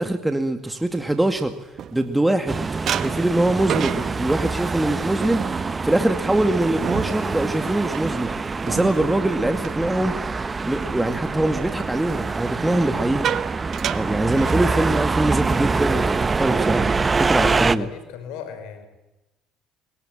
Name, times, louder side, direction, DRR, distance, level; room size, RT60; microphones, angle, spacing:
voice 1, 0.0-1.5 1.9-2.6 2.9-5.5 5.8-8.3 8.6-10.2 10.6-13.3 13.9-17.9, right 1 dB, 10° right, 7 dB, 2.1 m, -23 dB
sound 1, 1.0-2.4 2.9-10.7 11.0-11.4 12.5-15.1 15.4-15.6 15.9-16.2 16.7-17.4, right 9 dB, 60° right, 1.3 m, -32 dB
sound 2, 2.5-17.8, right 4 dB, 30° right, 1.2 m, -25 dB
voice 2, 17.3-18.9, left 8 dB, 75° left, 10 dB, 4.5 m, -37 dB
23.0 x 22.5 x 8.9 m, 0.99 s
hypercardioid pair, 65°, 0 cm